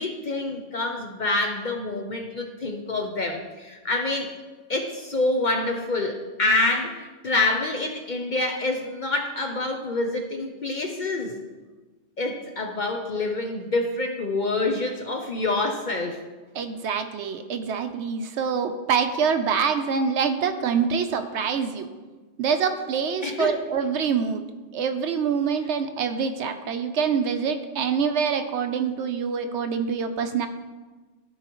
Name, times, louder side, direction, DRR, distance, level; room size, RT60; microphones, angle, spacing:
voice 1, 0.0-4.3 4.7-11.4 12.2-16.2 23.2-23.5, left 2 dB, 50° left, 3 dB, 0.7 m, -27 dB
voice 2, 16.5-21.9 22.4-24.4 24.7-30.5, right 6 dB, 70° right, 8 dB, 0.9 m, -25 dB
14.0 x 4.8 x 3.0 m, 1.3 s
omnidirectional pair, 1.3 m